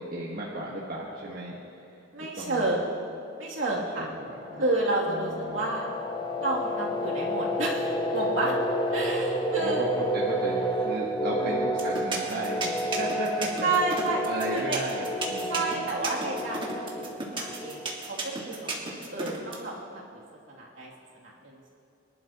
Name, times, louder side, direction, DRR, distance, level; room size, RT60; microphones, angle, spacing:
voice 1, 0.0-2.7 3.9-4.6 5.1-5.8 9.6-13.7 14.2-15.9, right 1 dB, 50° right, -4 dB, 1.4 m, -35 dB
voice 2, 2.1-3.0 3.4-4.1 4.6-5.9 6.4-8.5 8.9-9.8 11.2-11.6 13.6-14.2 14.5-14.8 15.5-17.8 18.1-20.2 20.5-21.7, right 3 dB, 75° right, -4 dB, 2.7 m, -31 dB
sound 1, 4.1-18.5, equal, 25° left, 0.8 m, -31 dB
sound 2, 11.8-19.5, right 3 dB, 25° right, 1.8 m, -33 dB
23.5 x 11.5 x 3.0 m, 2.8 s
head